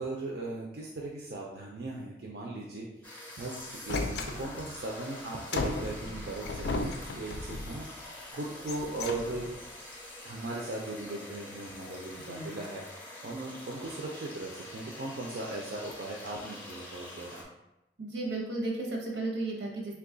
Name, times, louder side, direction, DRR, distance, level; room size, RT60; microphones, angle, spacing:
voice 1, 0.0-2.9 3.4-9.5 10.2-17.5, right 2 dB, 60° right, -3 dB, 0.4 m, -38 dB
sound 1, 3.0-17.4, left 1 dB, 10° left, 0.5 m, -46 dB
sound 2, 3.9-4.8 5.5-7.8 8.5-9.6, left 3 dB, 65° left, 0.3 m, -35 dB
voice 2, 12.3-12.6 18.0-20.0, right 2 dB, 80° right, 0 dB, 0.8 m, -34 dB
3.0 x 2.3 x 3.8 m, 0.93 s
head